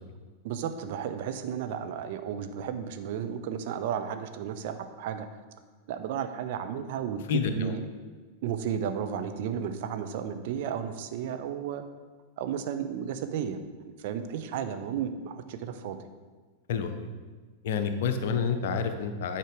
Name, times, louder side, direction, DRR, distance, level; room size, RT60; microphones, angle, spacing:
voice 1, 0.4-5.3 5.9-7.9 8.4-11.8 12.4-13.6 14.0-16.0, right 8 dB, 50° right, 8 dB, 0.6 m, -33 dB
voice 2, 7.3-7.8 16.7-17.1 17.6-19.4, left 6 dB, 55° left, 8 dB, 0.7 m, -29 dB
9.2 x 4.4 x 5.1 m, 1.4 s
figure-of-eight pair, 90°, 0 cm